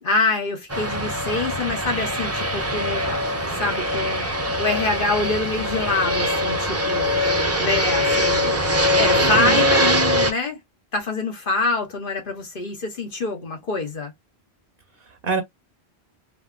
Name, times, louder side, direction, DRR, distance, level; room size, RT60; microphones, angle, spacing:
voice 1, 0.0-3.2 3.5-7.1 7.6-8.6 8.9-10.6 10.9-14.1, left 3 dB, 60° left, 1.2 m, -26 dB
Fixed-wing aircraft airplane, 0.7-10.3, equal, 20° right, 0.5 m, -22 dB
voice 2, 9.2-9.7 15.0-15.4, right 4 dB, 60° right, 0.8 m, -26 dB
3.3 x 2.3 x 2.3 m
omnidirectional pair, 1.0 m